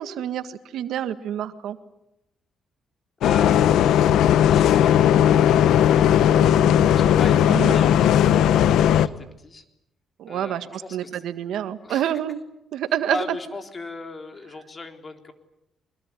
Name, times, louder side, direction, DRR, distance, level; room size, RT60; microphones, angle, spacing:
voice 1, 0.0-1.8 7.5-7.8 10.2-12.4 12.7-13.2, right 10 dB, 80° right, 11 dB, 1.6 m, -28 dB
Bus, 3.2-9.1, left 10 dB, 80° left, 1.0 m, -17 dB
voice 2, 3.2-5.6 6.2-9.6 10.3-11.2 11.8-12.1 13.1-15.3, left 3 dB, 30° left, 6 dB, 3.9 m, -38 dB
24.5 x 22.0 x 9.9 m, 0.87 s
cardioid pair, 90°, 0 cm